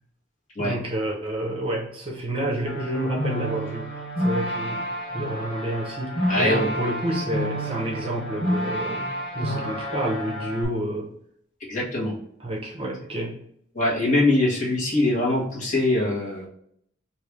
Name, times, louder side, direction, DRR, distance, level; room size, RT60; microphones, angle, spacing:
voice 1, 0.6-11.1 12.4-13.4, right 1 dB, 30° right, -2 dB, 0.7 m, -29 dB
sound 1, 2.7-10.7, equal, 70° left, 1.5 m, -29 dB
voice 2, 6.3-6.7 11.7-12.1 13.7-16.5, left 2 dB, 40° left, -6 dB, 1.2 m, -22 dB
3.2 x 2.6 x 3.5 m, 0.69 s
head